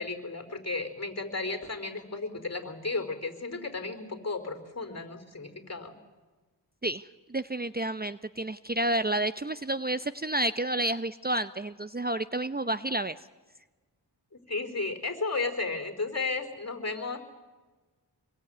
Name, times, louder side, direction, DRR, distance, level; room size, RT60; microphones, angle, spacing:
voice 1, 0.0-5.9 14.5-17.2, left 3 dB, 40° left, 8 dB, 4.5 m, -34 dB
voice 2, 7.3-13.2, right 1 dB, 25° right, 13 dB, 0.8 m, -30 dB
27.5 x 22.0 x 9.3 m, 1.3 s
wide cardioid pair, 55°, 41 cm